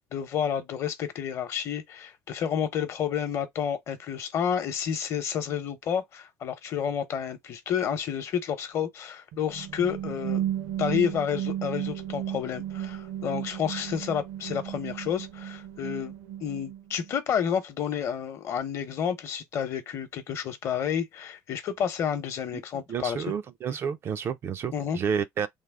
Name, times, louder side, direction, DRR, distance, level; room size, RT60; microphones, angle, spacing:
voice 1, 0.0-10.4 10.8-16.1 16.4-23.2 24.7-25.0, left 8 dB, 45° left, 0.8 m, -30 dB
sound 1, 9.3-17.1, right 11 dB, 70° right, 0.6 m, -34 dB
voice 2, 22.9-25.5, right 7 dB, 35° right, 0.3 m, -30 dB
3.3 x 2.0 x 3.4 m
cardioid pair, 145°, 7 cm